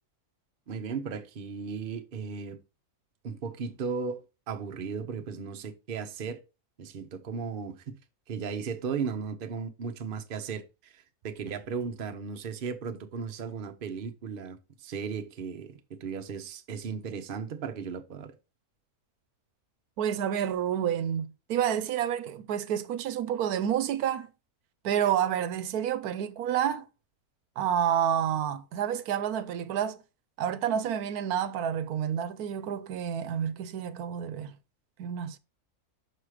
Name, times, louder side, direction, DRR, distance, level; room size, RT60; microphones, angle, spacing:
voice 1, 0.7-2.6 3.2-6.4 6.8-8.0 8.3-18.3, right 6 dB, 45° right, 0.8 m, -36 dB
voice 2, 20.0-24.3 24.8-26.8 27.6-30.0 30.4-34.5 35.0-35.4, right 9 dB, 80° right, 1.1 m, -29 dB
6.2 x 4.8 x 4.8 m
omnidirectional pair, 1.6 m